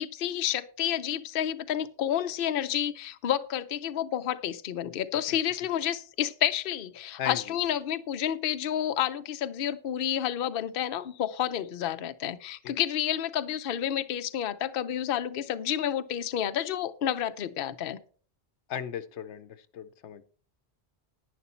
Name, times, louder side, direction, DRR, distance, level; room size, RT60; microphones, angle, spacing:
voice 1, 0.0-18.0, left 10 dB, 60° left, 10 dB, 0.8 m, -30 dB
voice 2, 7.2-7.6 12.6-12.7 18.7-20.2, left 8 dB, 85° left, 13 dB, 1.0 m, -37 dB
11.0 x 9.5 x 4.3 m, 0.42 s
omnidirectional pair, 1.1 m